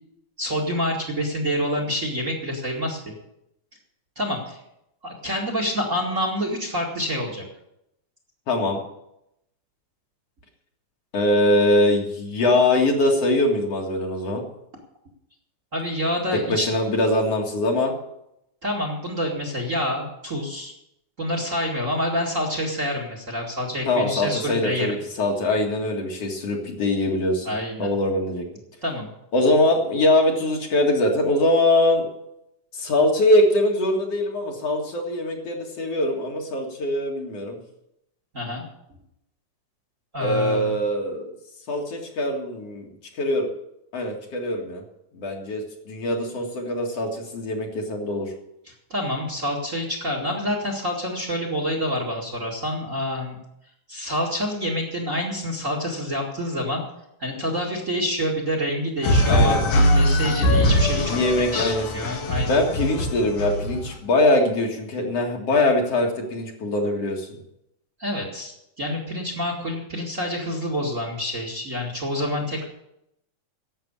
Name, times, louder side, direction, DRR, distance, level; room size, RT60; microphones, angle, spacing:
voice 1, 0.4-3.0 4.2-4.6 5.0-7.4 15.7-16.7 18.6-20.7 21.2-24.9 27.4-27.9 28.8-29.1 38.3-38.6 40.1-40.7 48.7-53.4 53.9-56.8 57.2-59.7 60.0-61.2 61.5-62.6 68.0-72.7, equal, 30° right, 1 dB, 2.1 m, -27 dB
voice 2, 8.5-8.8 11.1-14.4 16.3-17.9 23.9-27.5 27.8-28.4 29.3-32.1 32.7-37.6 40.2-41.3 41.7-42.9 43.2-43.5 43.9-44.8 45.1-48.3 59.3-59.6 61.0-61.9 62.5-67.4, left 1 dB, 55° left, 1 dB, 2.9 m, -22 dB
sound 1, 59.0-63.9, left 1 dB, 80° left, 3.3 m, -21 dB
11.5 x 8.1 x 9.8 m, 0.81 s
omnidirectional pair, 3.5 m